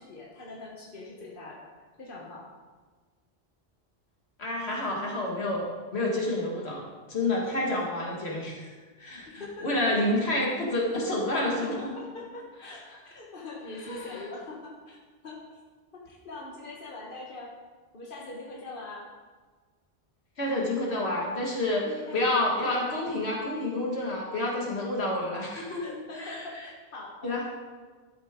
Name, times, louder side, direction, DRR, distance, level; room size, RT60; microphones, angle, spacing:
voice 1, 0.0-1.7 2.0-2.5 9.3-9.7 10.1-10.2 11.6-15.0 15.2-15.4 15.9-17.5 17.9-19.1 21.8-22.2 22.5-22.7 25.8-27.5, left 2 dB, 55° left, -3 dB, 1.6 m, -42 dB
voice 2, 4.4-5.6 5.9-6.8 7.1-8.6 9.0-9.3 9.6-11.9 13.9-14.1 20.4-21.9 22.1-26.6 27.2-27.5, left 1 dB, 85° left, -3 dB, 2.2 m, -29 dB
12.5 x 7.9 x 3.7 m, 1.4 s
omnidirectional pair, 1.1 m